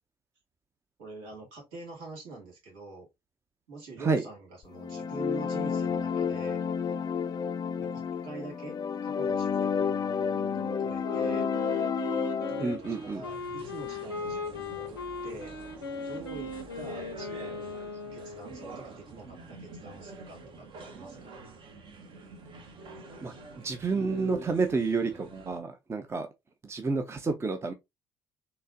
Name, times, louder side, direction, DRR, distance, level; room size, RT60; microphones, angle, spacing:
voice 1, 1.0-3.1 3.7-6.9 7.8-11.5 12.4-15.5 16.0-21.3, right 3 dB, 70° right, 1.9 m, -45 dB
voice 2, 4.0-4.3 12.6-13.2 23.2-23.3 23.6-26.3 26.6-27.7, right 4 dB, 20° right, 0.6 m, -29 dB
sound 1, 4.7-12.6, left 6 dB, 35° left, 0.4 m, -30 dB
Wind instrument woodwind instrument, 11.0-18.8, left 3 dB, 85° left, 0.5 m, -38 dB
sound 2, 12.7-25.6, right 2 dB, 45° right, 0.9 m, -46 dB
3.9 x 2.8 x 2.5 m
figure-of-eight pair, 50°, 12 cm